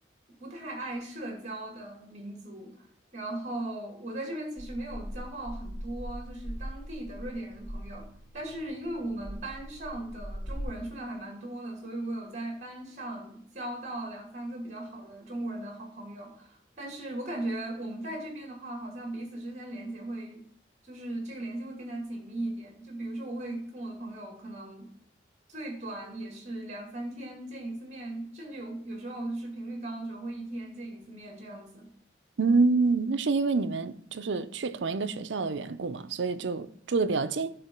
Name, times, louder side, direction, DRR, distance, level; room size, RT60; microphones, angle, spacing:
voice 1, 0.4-2.9 3.1-20.4 20.8-24.9 25.5-31.9, right 1 dB, 35° right, 2.1 m, -38 dB
sound 1, 4.6-10.6, equal, 45° left, 2.0 m, -41 dB
voice 2, 32.4-37.5, right 4 dB, 80° right, 0.5 m, -27 dB
10.0 x 3.8 x 5.8 m
head